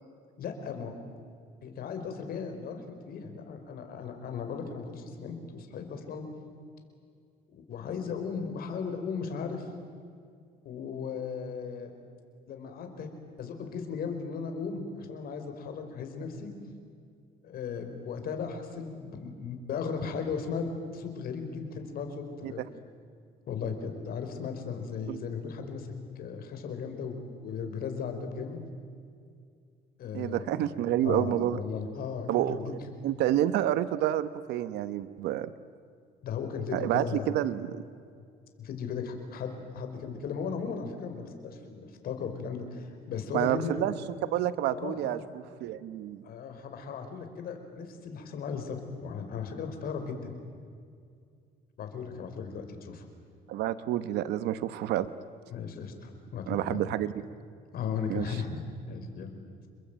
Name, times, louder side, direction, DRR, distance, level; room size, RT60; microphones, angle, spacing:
voice 1, 0.4-0.9 1.6-6.2 7.5-9.7 10.6-11.9 12.5-13.1 13.4-16.5 17.4-20.6 20.9-22.6 23.5-25.9 26.1-28.6 30.0-30.6 31.0-32.9 36.2-37.4 38.6-43.9 44.7-45.2 46.2-50.3 51.8-53.1 55.5-56.8 57.7-58.6 58.9-59.3, left 6 dB, 60° left, 5 dB, 5.1 m, -36 dB
voice 2, 30.1-31.6 32.3-32.6 33.0-35.5 36.7-37.8 43.3-43.9 44.2-46.2 53.5-55.1 56.5-57.1 58.1-58.4, right 12 dB, 85° right, 13 dB, 1.0 m, -29 dB
29.5 x 22.0 x 9.2 m, 2.2 s
cardioid pair, 110°, 17 cm